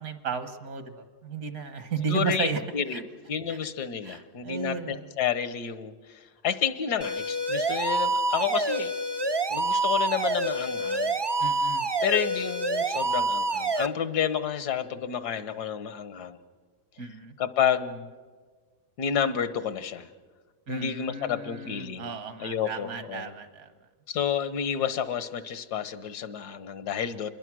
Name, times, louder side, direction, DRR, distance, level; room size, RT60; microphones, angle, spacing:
voice 1, 0.0-2.6 2.9-3.0 3.5-3.6 4.0-5.1 11.4-11.9 17.0-17.3 20.7-23.7, right 5 dB, 65° right, 9 dB, 1.8 m, -34 dB
voice 2, 2.0-8.9 9.5-11.2 12.0-16.4 17.4-18.1 19.0-20.1 20.7-23.3 24.1-27.3, left 8 dB, 85° left, 13 dB, 1.5 m, -30 dB
sound 1, 7.0-13.9, right 2 dB, 40° right, 0.3 m, -27 dB
27.5 x 21.5 x 6.2 m, 1.5 s
omnidirectional pair, 1.7 m